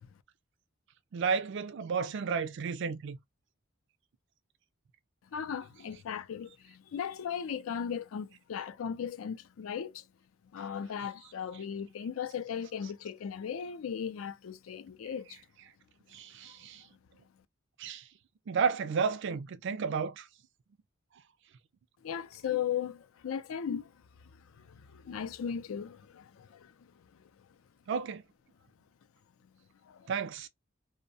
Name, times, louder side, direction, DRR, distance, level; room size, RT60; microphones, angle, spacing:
voice 1, 1.1-3.2 16.1-16.8 17.8-18.0 18.5-20.3 27.9-28.2 30.1-30.5, right 5 dB, 60° right, 0.4 m, -32 dB
voice 2, 5.3-10.0 10.5-15.4 22.0-23.9 24.5-26.7 29.8-30.1, left 8 dB, 85° left, 0.4 m, -37 dB
2.6 x 2.1 x 2.6 m
head